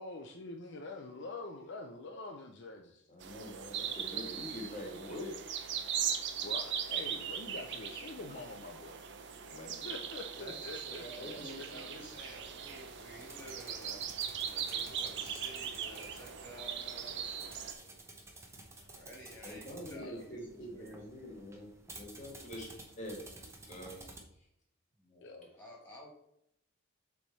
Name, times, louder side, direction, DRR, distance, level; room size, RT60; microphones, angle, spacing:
voice 1, 0.0-3.1 6.4-9.0 9.8-11.3 11.9-12.0 17.6-17.8 18.8-18.9 20.0-20.2 25.2-25.5, left 2 dB, 55° left, 3 dB, 0.6 m, -45 dB
voice 2, 3.1-5.3 8.3-8.4 9.4-9.9 11.1-12.1 19.4-23.2 23.7-24.0, equal, 35° left, 0 dB, 1.4 m, -45 dB
sound 1, 3.2-17.7, right 8 dB, 55° right, 0.6 m, -39 dB
voice 3, 10.4-18.2 18.9-21.0 25.0-26.1, equal, 10° left, -4 dB, 2.1 m, -52 dB
sound 2, 12.0-24.2, right 2 dB, 10° right, 0.8 m, -53 dB
7.4 x 3.5 x 4.1 m, 0.75 s
head